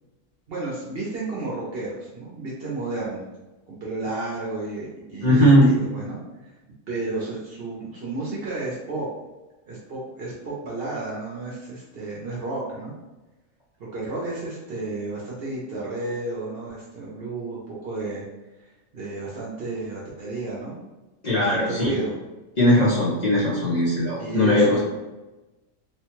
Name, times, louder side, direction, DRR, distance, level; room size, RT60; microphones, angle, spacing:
voice 1, 0.5-3.3 3.7-6.2 6.9-9.1 9.7-12.9 13.8-18.3 18.6-20.8 21.3-22.2 24.2-24.8, right 2 dB, 55° right, -5 dB, 0.8 m, -32 dB
voice 2, 5.2-5.7 21.2-21.9 22.6-24.8, equal, 40° left, -8 dB, 0.8 m, -19 dB
3.0 x 2.2 x 2.9 m, 1.1 s
omnidirectional pair, 1.4 m